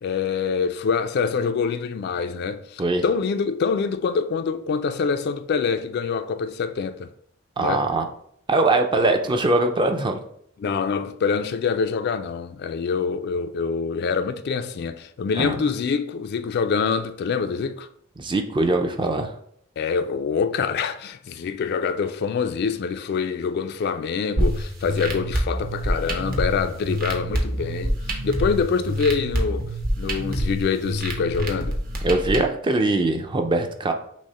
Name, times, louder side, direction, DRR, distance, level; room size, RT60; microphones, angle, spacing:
voice 1, 0.0-7.1 7.6-7.8 8.9-9.1 10.6-17.9 19.8-28.0 28.2-29.7 30.0-31.8, left 5 dB, 50° left, 0.3 m, -25 dB
voice 2, 7.6-8.1 8.5-10.2 15.3-15.6 18.2-19.3 32.0-33.9, right 2 dB, 25° right, 0.4 m, -22 dB
sound 1, 24.4-32.4, right 1 dB, 45° right, 0.9 m, -26 dB
6.2 x 2.1 x 4.1 m
head